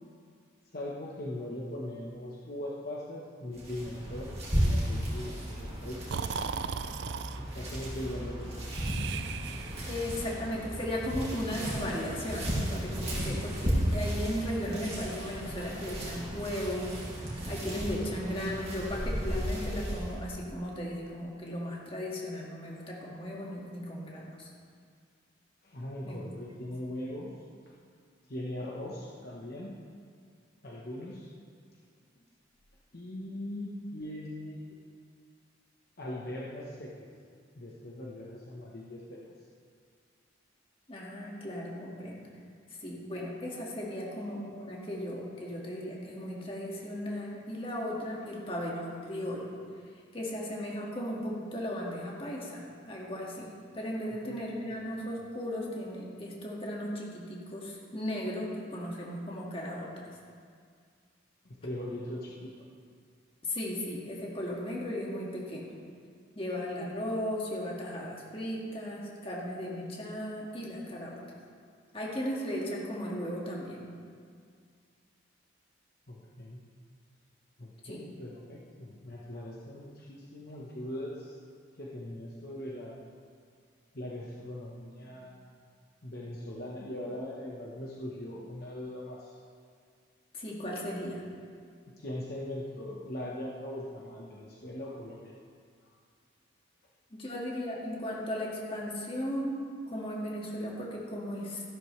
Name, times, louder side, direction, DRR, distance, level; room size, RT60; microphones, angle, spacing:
voice 1, 0.7-6.2 7.3-8.6 25.6-27.3 28.3-29.7 30.6-31.3 32.9-34.8 36.0-37.1 37.5-39.2 43.9-44.0 54.2-54.4 61.4-62.5 76.1-76.6 77.6-81.3 81.7-83.1 83.9-85.4 86.0-89.3 91.9-95.3, left 1 dB, 50° left, -4 dB, 1.1 m, -40 dB
sound 1, 3.5-20.2, equal, 30° right, 2.4 m, -34 dB
Breathing, 6.1-7.4 8.7-10.0, right 6 dB, 60° right, 0.3 m, -37 dB
voice 2, 9.9-24.5 26.1-26.3 40.9-42.3 42.7-49.5 50.1-60.1 63.4-65.7 66.4-71.2 71.9-73.9 77.8-78.0 90.3-91.2 97.1-99.5 99.9-101.6, equal, 30° left, -3 dB, 1.9 m, -36 dB
13.5 x 12.0 x 3.3 m, 2.1 s
head